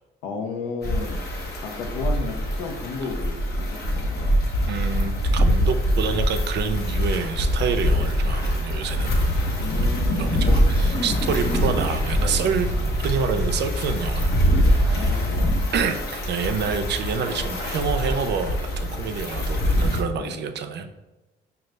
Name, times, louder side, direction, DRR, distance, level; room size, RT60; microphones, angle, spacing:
voice 1, 0.2-1.2 1.6-4.3 9.6-10.5 12.1-12.5 14.8-15.6 17.3-17.5 20.1-20.4, left 4 dB, 90° left, 3 dB, 0.7 m, -33 dB
sound 1, 0.8-20.0, equal, 55° left, 0.9 m, -23 dB
voice 2, 4.7-9.2 10.2-12.7 13.0-14.3 14.7-15.3 15.7-20.9, right 6 dB, 60° right, 7 dB, 0.5 m, -27 dB
sound 2, 7.2-12.5, left 1 dB, 20° left, 0.9 m, -41 dB
5.0 x 2.4 x 3.2 m, 1.1 s
supercardioid pair, 80°, 20 cm